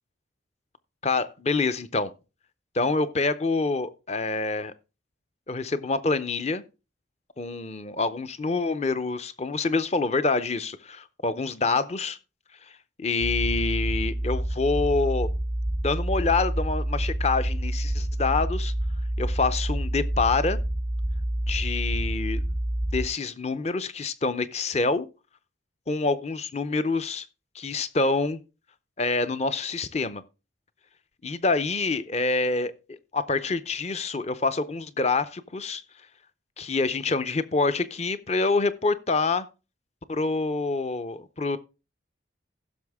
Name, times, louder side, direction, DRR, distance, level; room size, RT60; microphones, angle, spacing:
voice 1, 1.0-2.1 2.7-4.7 5.5-6.6 7.4-12.2 13.0-15.3 15.8-18.7 19.2-20.6 21.5-22.4 22.9-25.1 25.9-27.3 27.5-28.4 29.0-30.2 31.2-35.8 36.6-39.5 40.1-41.6, left 3 dB, 35° left, 0.6 m, -26 dB
sound 1, 13.2-23.1, right 1 dB, 10° right, 0.5 m, -28 dB
15.5 x 6.3 x 3.5 m
head